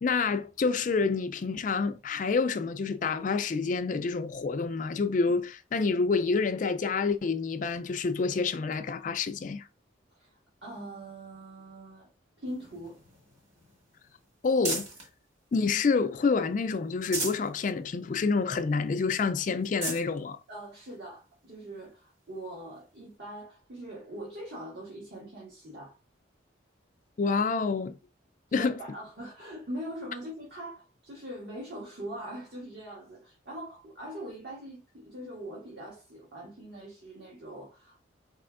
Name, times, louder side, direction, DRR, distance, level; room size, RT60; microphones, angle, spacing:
voice 1, 0.0-9.6 14.4-14.9 15.5-20.4 27.2-27.9 28.5-28.8, left 4 dB, 40° left, 0.3 m, -28 dB
voice 2, 10.6-12.1 12.4-13.0 20.5-26.0 28.5-38.0, right 1 dB, 55° right, 1.7 m, -42 dB
sound 1, 12.5-15.1 15.6-16.4 16.8-17.5 18.0-18.1 18.4-18.5 19.1-19.2 19.6-20.1 20.9-21.0 22.8-22.9, right 2 dB, 35° right, 1.8 m, -37 dB
4.7 x 4.3 x 2.4 m
head